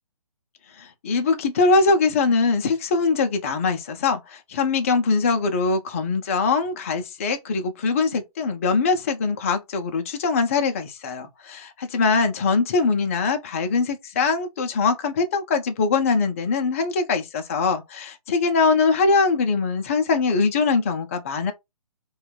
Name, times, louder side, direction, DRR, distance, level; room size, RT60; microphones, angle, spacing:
voice 1, 0.8-21.5, left 4 dB, 25° left, 0.3 m, -22 dB
4.3 x 2.2 x 2.3 m
hypercardioid pair, 150°, 19 cm